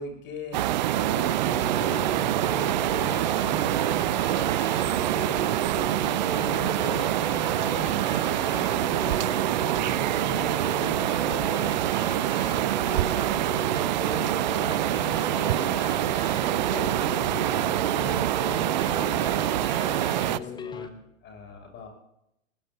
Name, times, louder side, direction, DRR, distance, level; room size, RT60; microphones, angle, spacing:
voice 1, 0.0-2.1 6.5-9.5 9.9-13.3 14.0-16.1 16.6-21.9, left 3 dB, 25° left, 3 dB, 7.0 m, -42 dB
sound 1, 0.5-20.4, right 14 dB, 35° right, 0.5 m, -25 dB
sound 2, 1.4-20.9, left 6 dB, 10° left, 1.1 m, -37 dB
voice 2, 2.9-5.4, right 5 dB, 20° right, 4 dB, 4.7 m, -43 dB
21.0 x 20.5 x 2.7 m, 0.79 s
figure-of-eight pair, 115°, 41 cm